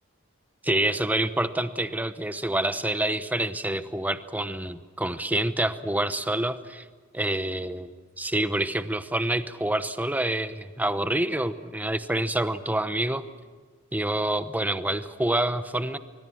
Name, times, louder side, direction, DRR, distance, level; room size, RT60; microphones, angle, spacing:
voice 1, 0.6-6.8 7.1-13.2 13.9-16.0, right 1 dB, 10° right, 11 dB, 0.9 m, -27 dB
25.0 x 21.5 x 7.2 m, 1.4 s
head